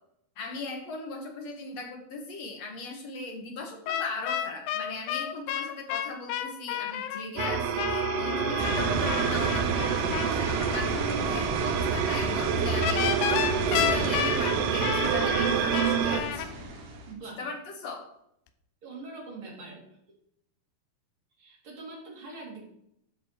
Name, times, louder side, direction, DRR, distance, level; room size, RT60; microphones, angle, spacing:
voice 1, 0.4-16.5 17.4-18.1, left 3 dB, 60° left, 2 dB, 1.8 m, -38 dB
sound 1, 3.9-10.3 12.8-16.5, left 10 dB, 80° left, 2.8 m, -31 dB
sound 2, 7.4-16.2, right 9 dB, 85° right, 2.9 m, -28 dB
sound 3, 8.6-17.1, right 3 dB, 65° right, 3.3 m, -32 dB
voice 2, 17.1-17.5 18.8-19.8 21.4-22.7, right 3 dB, 35° right, -3 dB, 3.4 m, -43 dB
13.0 x 6.8 x 4.5 m, 0.76 s
omnidirectional pair, 4.8 m